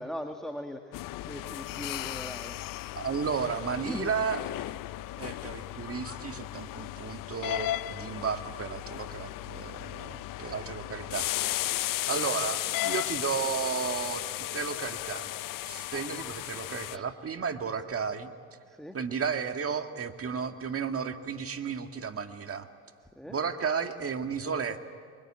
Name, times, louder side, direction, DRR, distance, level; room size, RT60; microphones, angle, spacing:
voice 1, 0.0-2.6 3.5-4.2 16.7-17.1 17.8-17.9 18.6-18.9 23.1-23.4, equal, ahead, 4 dB, 1.7 m, -41 dB
sound 1, 0.9-17.0, left 16 dB, 65° left, 0.6 m, -35 dB
voice 2, 2.9-4.4 5.2-11.3 12.1-14.2 14.5-15.3 15.7-18.3 18.9-22.7 23.3-24.8, right 6 dB, 40° right, 6 dB, 1.9 m, -33 dB
24.0 x 23.0 x 8.7 m, 2.1 s
supercardioid pair, 80°, 35 cm